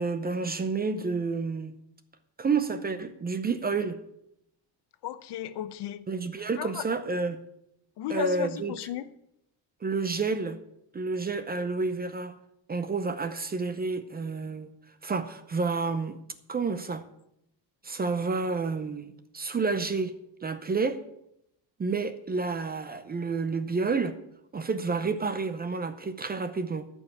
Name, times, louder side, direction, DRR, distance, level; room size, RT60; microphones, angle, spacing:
voice 1, 0.0-1.7 2.4-4.0 6.1-7.4 8.1-8.7 9.8-10.6 10.9-12.4 12.7-14.7 15.0-16.2 16.5-17.0 17.8-19.1 19.3-21.0 21.8-24.2 24.5-26.9, right 4 dB, 20° right, 11 dB, 0.6 m, -29 dB
voice 2, 5.0-6.0 6.6-6.8 8.0-9.0, left 12 dB, 65° left, 13 dB, 0.9 m, -34 dB
13.5 x 5.5 x 8.4 m, 0.78 s
cardioid pair, 155°, 44 cm